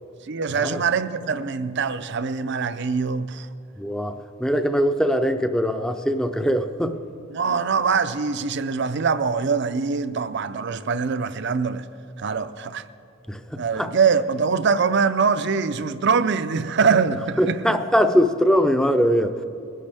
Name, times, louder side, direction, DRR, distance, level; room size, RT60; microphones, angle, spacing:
voice 1, 0.3-3.5 7.3-11.8 12.2-12.8 13.6-17.8, right 5 dB, 55° right, 0.5 m, -23 dB
voice 2, 3.8-7.0 13.3-13.9 17.4-19.4, equal, 5° left, 0.5 m, -21 dB
21.5 x 11.0 x 3.5 m
head